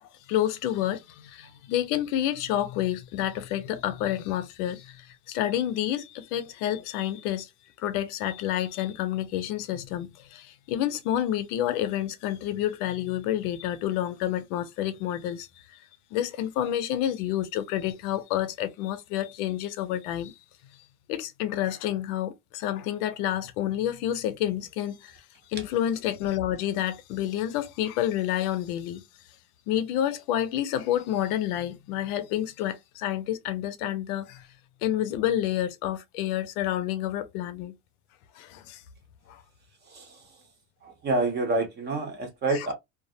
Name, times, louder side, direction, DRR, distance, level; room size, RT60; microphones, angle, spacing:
voice 1, 0.0-7.5 7.8-15.8 16.1-20.3 21.1-25.2 25.5-29.0 29.7-34.5 34.8-37.7 38.4-38.8 39.3-39.4 42.5-42.7, left 12 dB, 85° left, 0.6 m, -29 dB
voice 2, 39.9-40.4 40.8-42.7, right 2 dB, 25° right, 0.6 m, -28 dB
2.4 x 2.0 x 2.6 m
cardioid pair, 150°, 43 cm